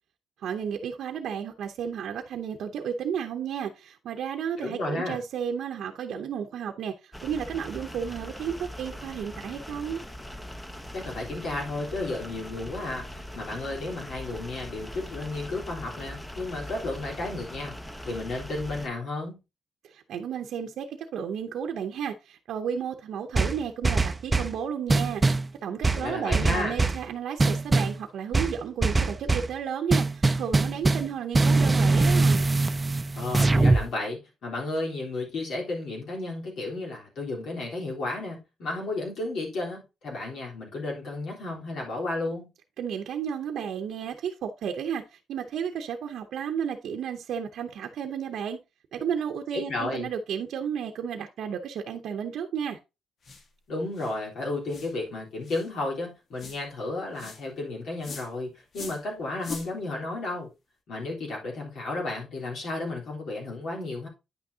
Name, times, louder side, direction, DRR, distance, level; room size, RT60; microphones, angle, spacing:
voice 1, 0.4-6.9 7.2-10.0 19.8-20.9 21.1-25.2 25.6-32.5 42.8-48.6 48.9-52.8, right 8 dB, 80° right, 0.8 m, -32 dB
voice 2, 4.6-5.2 10.9-17.8 18.0-19.4 26.0-26.8 33.2-42.5 49.5-50.1 53.7-60.5 60.9-64.1, left 2 dB, 70° left, 3.6 m, -33 dB
sound 1, 7.1-18.9, equal, 10° left, 0.8 m, -41 dB
sound 2, 23.4-24.6 24.9-25.5 25.8-27.0 27.4-28.0 28.3-29.5 29.9-31.1 31.3-33.9, right 3 dB, 20° right, 0.5 m, -22 dB
sound 3, 53.2-53.5 53.9-54.1 54.7-54.9 55.4-55.7 56.4-56.6 57.1-57.4 58.0-58.3 58.7-59.0 59.4-59.7, left 5 dB, 55° left, 1.3 m, -41 dB
9.4 x 6.1 x 2.8 m
cardioid pair, 115°, 0 cm